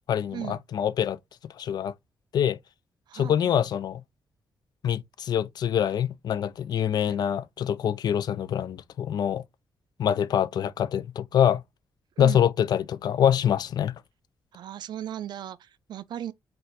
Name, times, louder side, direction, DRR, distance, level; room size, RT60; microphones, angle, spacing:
voice 1, 0.1-1.2 1.6-1.9 2.3-2.6 3.1-4.0 4.8-9.4 10.0-11.6 12.2-13.9, left 9 dB, 65° left, 0.4 m, -25 dB
voice 2, 3.1-3.5 7.1-7.2 12.2-12.5 14.5-16.3, right 11 dB, 75° right, 0.4 m, -37 dB
4.3 x 2.6 x 3.9 m
cardioid pair, 105°, 8 cm